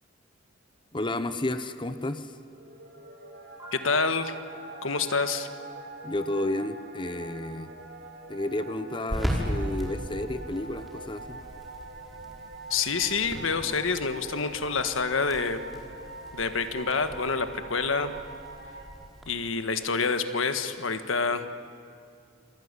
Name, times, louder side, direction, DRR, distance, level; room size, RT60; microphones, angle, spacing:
voice 1, 0.9-2.3 6.0-7.7 8.3-11.4, left 1 dB, 25° left, 10 dB, 0.9 m, -31 dB
sound 1, 2.4-18.9, right 2 dB, 65° right, 3.7 m, -44 dB
sound 2, 3.6-7.6, right 1 dB, 15° right, 7.8 m, -50 dB
voice 2, 3.7-4.4 4.8-5.5 12.7-15.6 16.3-18.1 19.3-21.5, left 4 dB, 90° left, 9 dB, 1.5 m, -27 dB
sound 3, 7.0-19.2, equal, ahead, 5.3 m, -38 dB
27.5 x 21.5 x 9.8 m, 2.3 s
head